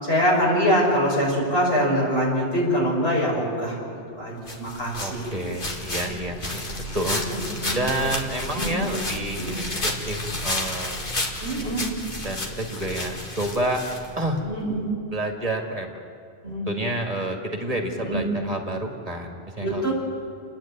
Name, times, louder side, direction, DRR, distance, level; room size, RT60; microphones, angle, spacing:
voice 1, 0.0-3.7 4.2-5.2 7.3-7.8 8.6-8.9 9.3-9.5 11.4-11.8 14.4-14.8 16.4-16.7 18.0-18.2 19.6-19.9, equal, 80° left, -4 dB, 6.0 m, -24 dB
sound 1, 4.5-14.5, left 1 dB, 55° left, 2.2 m, -31 dB
voice 2, 5.0-6.6 6.9-7.2 7.7-11.1 12.2-13.8 14.2-14.4 15.1-15.9 16.7-19.9, right 1 dB, 35° right, 2 dB, 2.1 m, -29 dB
30.0 x 10.5 x 8.8 m, 2.6 s
omnidirectional pair, 1.0 m